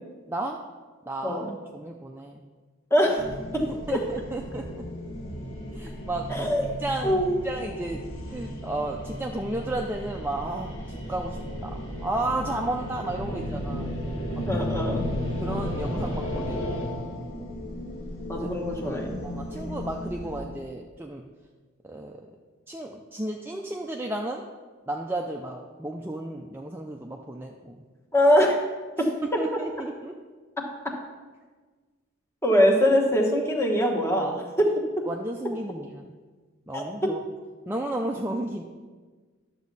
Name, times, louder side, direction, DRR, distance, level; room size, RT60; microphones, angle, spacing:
voice 1, 1.1-1.4 1.7-2.4 3.9-4.8 5.7-6.5 6.8-7.2 7.4-8.0 8.3-11.7 12.0-13.9 14.3-14.7 15.4-16.8 18.3-18.5 19.2-21.2 21.8-22.1 22.7-24.4 24.9-27.7 29.4-30.1 35.1-36.1 36.7-37.2 37.7-38.6, right 2 dB, 10° right, 1 dB, 0.4 m, -33 dB
voice 2, 2.9-3.2 3.5-3.6 3.9-4.0 6.3-6.6 7.0-7.4 13.3-13.6 14.4-15.0 18.3-19.2 28.1-28.6 29.0-29.4 30.6-30.9 32.4-35.0 36.7-37.1, equal, 10° left, 0 dB, 1.2 m, -23 dB
sound 1, 3.2-20.4, left 1 dB, 75° left, 1.9 m, -34 dB
11.5 x 7.3 x 4.0 m, 1.4 s
head